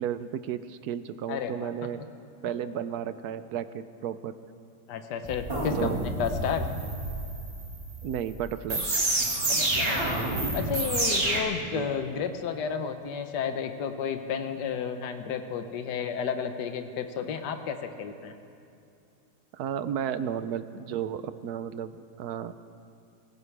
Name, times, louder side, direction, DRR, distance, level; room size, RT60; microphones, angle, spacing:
voice 1, 0.0-2.0 2.4-4.3 5.8-6.0 8.0-8.9 11.6-11.9 19.5-22.5, right 9 dB, 70° right, 12 dB, 1.0 m, -33 dB
voice 2, 1.3-1.7 4.9-6.7 9.5-10.0 10.5-18.3, left 7 dB, 75° left, 7 dB, 1.5 m, -32 dB
sound 1, 5.2-11.4, right 2 dB, 35° right, 2.2 m, -28 dB
25.0 x 15.5 x 3.3 m, 2.6 s
omnidirectional pair, 1.9 m